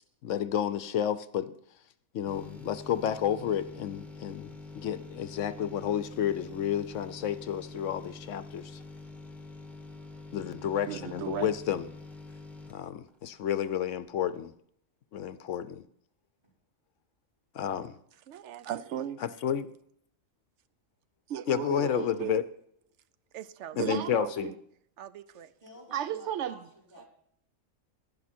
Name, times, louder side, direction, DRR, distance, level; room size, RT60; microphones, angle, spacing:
voice 1, 0.2-1.5 2.1-8.8 10.3-11.9 12.7-14.5 15.1-15.8 17.5-18.0 19.2-19.7 21.5-22.4 23.8-24.5, left 9 dB, 65° left, 14 dB, 0.9 m, -31 dB
sound 1, 2.2-13.9 14.2-14.3, left 3 dB, ahead, 1.2 m, -46 dB
voice 2, 10.9-11.5 18.3-19.2 21.3-22.4 23.3-24.6 25.0-25.5 25.9-26.7, right 10 dB, 65° right, 15 dB, 0.8 m, -35 dB
voice 3, 21.9-22.2 23.9-24.5 25.6-27.1, equal, 15° right, -3 dB, 4.1 m, -52 dB
11.5 x 11.0 x 4.3 m, 0.67 s
omnidirectional pair, 1.5 m